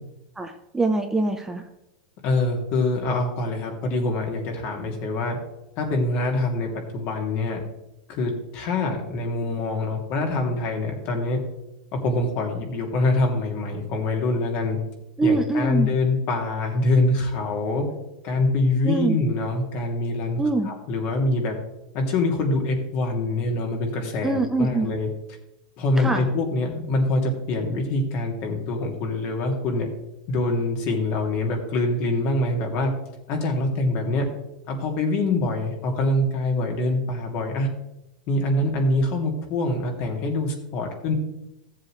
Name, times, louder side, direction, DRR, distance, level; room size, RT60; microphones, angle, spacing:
voice 1, 0.4-1.6 15.2-15.9 18.8-19.2 20.4-20.7 24.2-24.9 26.0-26.3, right 3 dB, 10° right, 5 dB, 0.8 m, -24 dB
voice 2, 2.2-5.4 5.8-7.6 8.1-11.4 11.9-14.8 15.2-17.8 18.2-21.6 21.9-25.1 25.8-29.9 30.3-32.9 33.3-34.2 34.7-37.7 38.3-41.1, left 2 dB, 50° left, 2 dB, 2.5 m, -24 dB
14.5 x 7.5 x 3.3 m, 0.90 s
hypercardioid pair, 125°, 5 cm